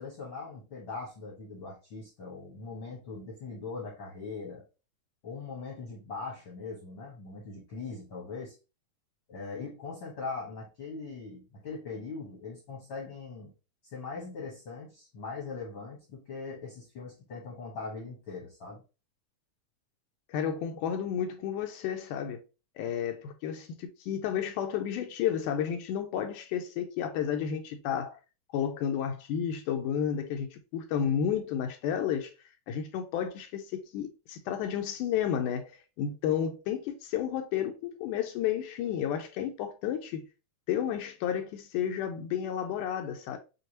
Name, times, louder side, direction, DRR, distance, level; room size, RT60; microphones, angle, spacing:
voice 1, 0.0-4.6 5.2-8.5 9.3-13.5 13.8-18.8, left 4 dB, 60° left, 1.3 m, -41 dB
voice 2, 20.3-22.4 22.8-28.2 28.5-32.3 32.7-40.3 40.7-43.4, left 9 dB, 80° left, 2.0 m, -32 dB
6.4 x 2.3 x 2.8 m
omnidirectional pair, 3.8 m